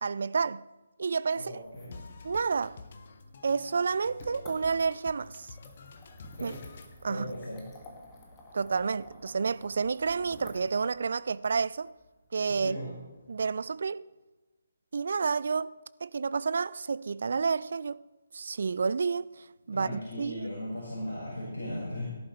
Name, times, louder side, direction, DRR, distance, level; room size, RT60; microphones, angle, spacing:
voice 1, 0.0-0.6 1.0-1.6 2.2-2.8 3.4-5.5 6.4-6.5 7.0-7.3 8.5-11.9 12.3-12.8 13.3-14.0 14.9-18.0 18.3-20.5, right 5 dB, 50° right, 0.3 m, -30 dB
voice 2, 1.3-2.0 6.3-6.6 7.1-7.6 12.6-12.9 19.7-22.1, left 1 dB, 65° left, 5.0 m, -37 dB
sound 1, 1.5-13.4, left 2 dB, 15° left, 2.1 m, -53 dB
sound 2, 1.9-6.9, left 4 dB, 40° left, 1.0 m, -49 dB
17.0 x 11.0 x 3.3 m
figure-of-eight pair, 145°, 0 cm